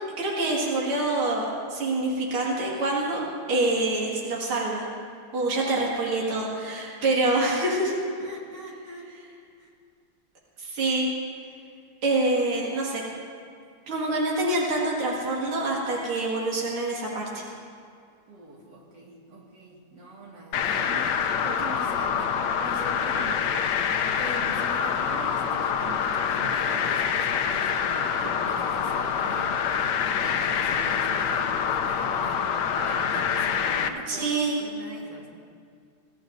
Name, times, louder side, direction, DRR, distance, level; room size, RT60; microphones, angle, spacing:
voice 1, 0.2-3.2 3.5-4.9 5.3-7.9 10.6-11.1 12.0-13.0 13.9-17.4 34.1-34.6, right 2 dB, 75° right, -4 dB, 2.9 m, -26 dB
voice 2, 8.2-9.1 9.6-9.7 18.3-23.7 24.2-32.5 32.7-35.3, right 2 dB, 50° right, -3 dB, 2.6 m, -42 dB
sound 1, 20.5-33.9, left 7 dB, 70° left, 1.1 m, -26 dB
23.0 x 15.5 x 2.7 m, 2.3 s
omnidirectional pair, 2.4 m